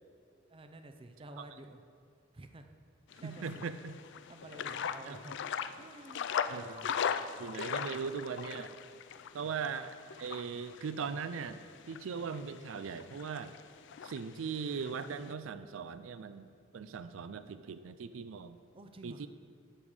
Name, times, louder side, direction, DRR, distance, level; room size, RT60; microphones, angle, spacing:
voice 1, 0.5-1.8 2.3-2.7 3.2-3.6 4.3-5.4 5.8-6.3 6.6-7.0 9.4-9.5 18.7-19.3, right 2 dB, 25° right, 7 dB, 0.5 m, -51 dB
sound 1, 3.1-15.3, left 7 dB, 65° left, 0.4 m, -40 dB
voice 2, 3.2-4.0 5.0-5.2 6.5-6.8 7.4-8.8 9.3-13.5 14.0-18.6 19.0-19.3, right 6 dB, 80° right, 12 dB, 0.4 m, -39 dB
11.0 x 7.2 x 4.9 m, 2.2 s
head